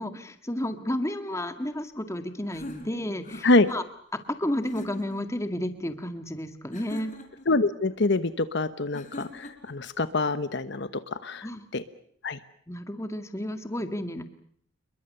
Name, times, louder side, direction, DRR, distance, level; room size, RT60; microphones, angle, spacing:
voice 1, 0.0-3.8 4.3-7.1 11.4-11.7 12.7-14.2, left 1 dB, 15° left, 8 dB, 1.9 m, -32 dB
sound 1, 2.5-3.8 4.6-5.3 6.7-7.5 8.9-9.7, left 1 dB, 40° left, 4.0 m, -41 dB
voice 2, 7.5-11.5 11.7-11.8 12.2-12.4, left 2 dB, 60° left, 12 dB, 1.1 m, -25 dB
28.5 x 22.0 x 6.8 m, 0.65 s
head